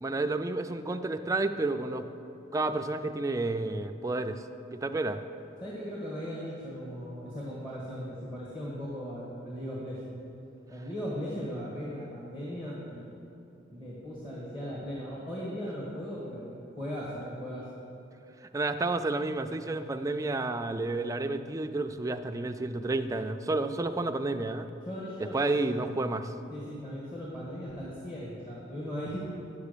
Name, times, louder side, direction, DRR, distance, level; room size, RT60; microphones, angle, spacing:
voice 1, 0.0-2.1 2.5-4.4 4.7-5.2 18.5-24.7 25.3-26.3, right 2 dB, 20° right, 7 dB, 0.4 m, -30 dB
voice 2, 5.6-10.1 10.7-13.0 13.7-17.6 24.8-25.4 26.5-29.2, equal, 25° left, -6 dB, 1.6 m, -38 dB
9.8 x 7.2 x 6.7 m, 2.7 s
head